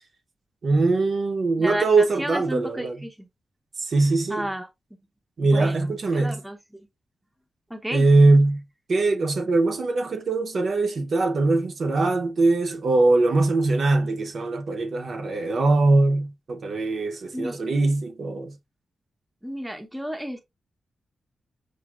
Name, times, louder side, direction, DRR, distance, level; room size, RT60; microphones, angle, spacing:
voice 1, 0.6-3.0 3.8-4.5 5.4-6.4 7.9-8.6 8.9-18.5, right 2 dB, 60° right, 0.8 m, -21 dB
voice 2, 1.6-3.3 4.3-4.7 5.4-6.6 7.7-8.0 17.3-17.6 19.4-20.4, equal, 5° right, 0.8 m, -32 dB
6.1 x 2.6 x 2.4 m
wide cardioid pair, 110°, 0 cm